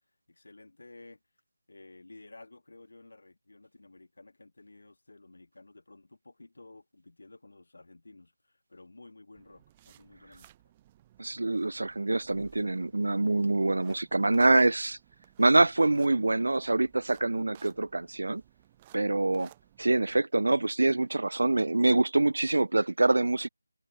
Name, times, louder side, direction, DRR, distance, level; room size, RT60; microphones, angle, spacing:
voice 1, 0.3-1.2 1.7-10.5, left 2 dB, 65° left, 3.6 m, -53 dB
sound 1, 9.3-20.2, right 14 dB, 15° right, 0.9 m, -60 dB
voice 2, 11.2-15.0 15.4-18.4 18.9-19.5 19.8-23.5, right 2 dB, 70° right, 0.4 m, -25 dB
figure-of-eight pair, 175°, 0 cm